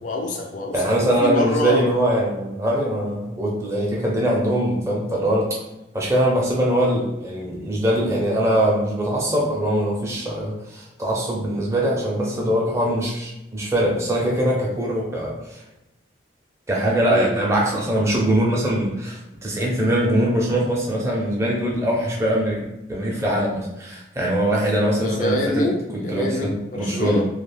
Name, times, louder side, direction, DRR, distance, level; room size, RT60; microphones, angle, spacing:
voice 1, 0.0-1.8 17.1-17.4 25.0-27.2, left 1 dB, 45° left, 0 dB, 0.4 m, -26 dB
voice 2, 0.7-5.6 5.9-15.6 16.7-22.6 22.9-25.4 26.1-27.2, right 1 dB, 15° right, -3 dB, 0.6 m, -22 dB
2.4 x 2.2 x 3.2 m, 0.93 s
head